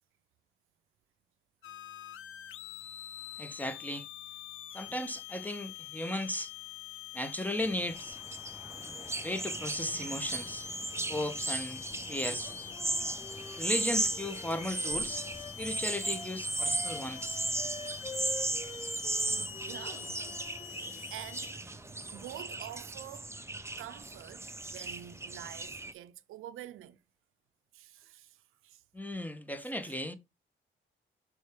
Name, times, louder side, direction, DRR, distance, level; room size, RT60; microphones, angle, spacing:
sound 1, 1.6-21.5, left 11 dB, 80° left, 0.6 m, -45 dB
voice 1, 3.4-4.1 4.7-6.5 7.1-8.2 9.2-10.7 11.1-11.8 12.1-12.5 13.5-17.5 28.9-30.2, left 1 dB, 10° left, 1.0 m, -36 dB
sound 2, 7.6-25.9, right 2 dB, 15° right, 0.8 m, -36 dB
Wind instrument woodwind instrument, 12.7-20.7, left 2 dB, 35° left, 2.7 m, -47 dB
voice 2, 19.3-23.4 23.8-27.0 27.7-28.8 29.8-30.0, right 12 dB, 90° right, 0.5 m, -48 dB
6.3 x 4.6 x 3.5 m
cardioid pair, 65°, 21 cm